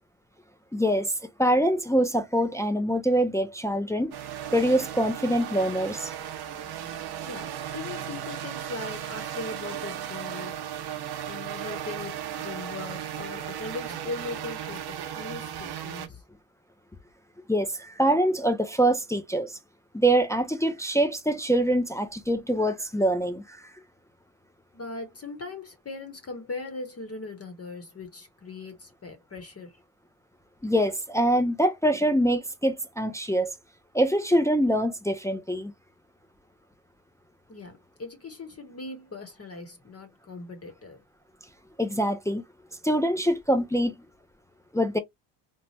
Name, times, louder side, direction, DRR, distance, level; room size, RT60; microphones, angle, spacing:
voice 1, 0.7-1.1 1.4-4.1 4.5-6.1 17.5-19.6 19.9-23.7 30.6-33.5 33.9-35.7 41.8-42.4 42.8-43.9 44.7-45.0, right 1 dB, 5° left, 0.4 m, -24 dB
sound 1, 4.1-16.1, right 10 dB, 60° right, 0.8 m, -36 dB
voice 2, 7.2-10.6 11.2-16.2 24.7-29.8 37.5-41.0, left 3 dB, 30° left, 0.9 m, -39 dB
3.1 x 2.1 x 2.7 m
cardioid pair, 85°, 45 cm